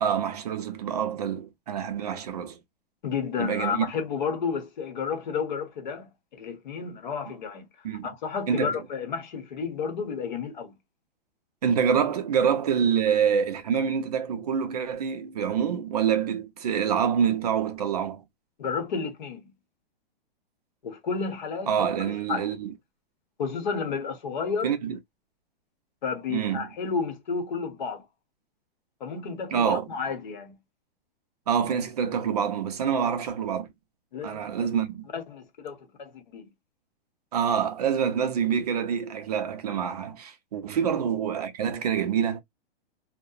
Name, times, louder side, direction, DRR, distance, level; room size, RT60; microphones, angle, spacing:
voice 1, 0.0-2.6 3.4-3.9 7.8-8.1 8.5-8.8 11.6-18.2 21.7-22.7 24.6-25.0 26.3-26.7 29.5-29.9 31.5-33.7 34.2-35.1 37.3-42.4, right 7 dB, 40° right, 0.5 m, -26 dB
voice 2, 3.0-7.7 8.0-10.8 18.6-19.5 20.8-21.9 22.3-22.5 23.4-24.7 26.0-28.1 29.0-30.6 33.0-33.1 34.1-34.7 35.1-36.5 40.8-40.9, left 5 dB, 50° left, 0.8 m, -31 dB
2.7 x 2.0 x 2.3 m
hypercardioid pair, 175°, 30 cm